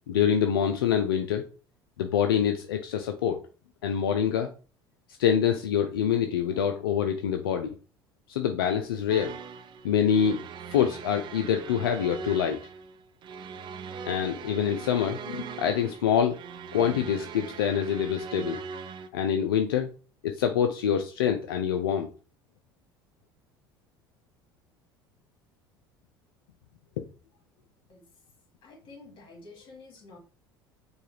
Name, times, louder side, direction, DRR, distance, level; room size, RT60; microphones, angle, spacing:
voice 1, 0.1-1.4 2.0-3.4 3.8-4.5 5.2-7.7 8.3-9.3 9.8-10.4 10.7-12.6 14.0-16.4 16.7-18.6 19.1-19.9 20.2-22.1, left 8 dB, 85° left, 6 dB, 0.4 m, -25 dB
sound 1, 9.1-19.1, right 5 dB, 40° right, 0.4 m, -40 dB
voice 2, 28.6-30.2, left 3 dB, 45° left, 0 dB, 1.9 m, -49 dB
4.6 x 2.3 x 3.2 m, 0.37 s
hypercardioid pair, 70°, 12 cm